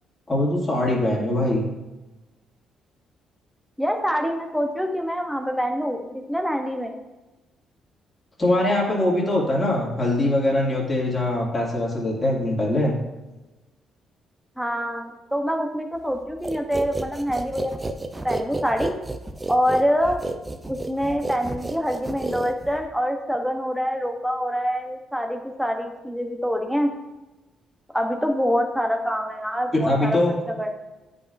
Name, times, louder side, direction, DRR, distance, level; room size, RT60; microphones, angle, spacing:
voice 1, 0.3-1.6 8.4-13.0 29.7-30.4, left 1 dB, 25° left, -5 dB, 2.4 m, -22 dB
voice 2, 3.8-6.9 14.6-17.9 18.2-18.9 19.5-20.2 20.7-26.9 27.9-30.7, equal, ahead, 4 dB, 0.9 m, -25 dB
sound 1, 16.4-22.9, right 2 dB, 20° right, 0.5 m, -31 dB
9.2 x 5.3 x 2.6 m, 1.1 s
cardioid pair, 90°, 0 cm